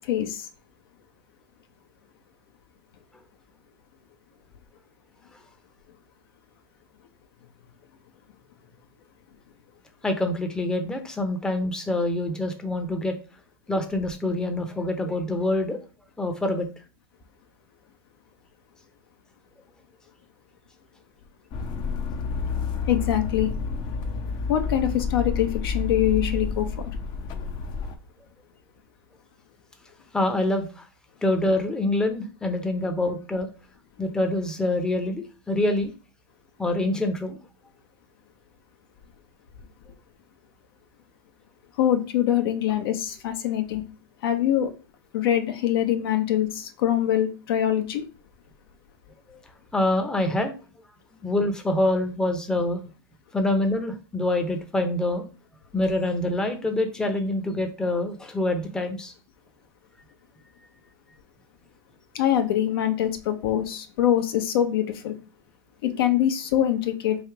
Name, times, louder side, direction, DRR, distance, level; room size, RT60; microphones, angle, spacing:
voice 1, 0.1-0.4 22.9-23.5 24.5-26.7 41.8-43.8 44.2-44.7 45.1-48.0 62.1-65.1 65.8-67.2, left 11 dB, 65° left, 7 dB, 0.8 m, -24 dB
voice 2, 10.0-13.2 13.7-15.8 16.2-16.7 30.1-30.8 31.2-33.5 34.0-35.9 36.6-37.4 49.3-49.4 49.7-50.5 51.2-52.8 53.3-55.2 55.7-59.1, left 1 dB, 5° left, 5 dB, 0.7 m, -25 dB
sound 1, 21.5-28.0, left 5 dB, 35° left, 0.6 m, -29 dB
3.4 x 2.8 x 4.6 m, 0.34 s
hypercardioid pair, 120°, 13 cm